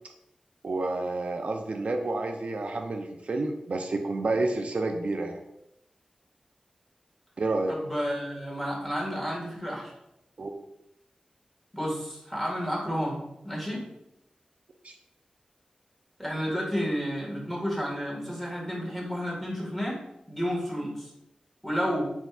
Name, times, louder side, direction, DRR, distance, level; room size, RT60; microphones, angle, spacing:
voice 1, 0.6-5.4 7.4-7.8 10.4-10.5 14.8-15.0, right 2 dB, 60° right, 4 dB, 0.4 m, -29 dB
voice 2, 7.7-9.9 11.7-13.9 16.2-20.0 20.3-21.0 21.6-22.1, equal, 10° left, -3 dB, 1.6 m, -31 dB
4.4 x 4.2 x 2.3 m, 0.83 s
wide cardioid pair, 75°, 2 cm